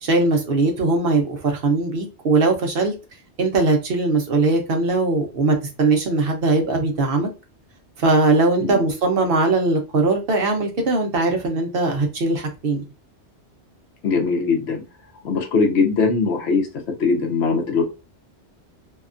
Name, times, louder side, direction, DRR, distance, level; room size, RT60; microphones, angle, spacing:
voice 1, 0.0-2.9 3.4-7.3 8.0-12.8, right 3 dB, 60° right, 0.9 m, -20 dB
voice 2, 14.0-14.8 15.2-16.7 17.0-17.8, left 4 dB, 70° left, 1.0 m, -20 dB
2.8 x 2.2 x 2.5 m
omnidirectional pair, 1.2 m